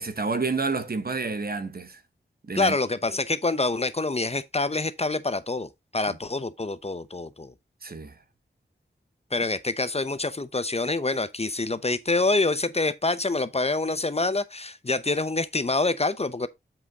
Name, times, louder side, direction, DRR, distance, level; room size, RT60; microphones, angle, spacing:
voice 1, 0.0-2.0 2.4-2.8 6.1-6.2 7.8-8.1, right 4 dB, 55° right, 1.0 m, -29 dB
voice 2, 2.5-7.5 9.3-16.5, left 3 dB, 35° left, 0.8 m, -26 dB
7.7 x 5.4 x 3.5 m
wide cardioid pair, 75°, 19 cm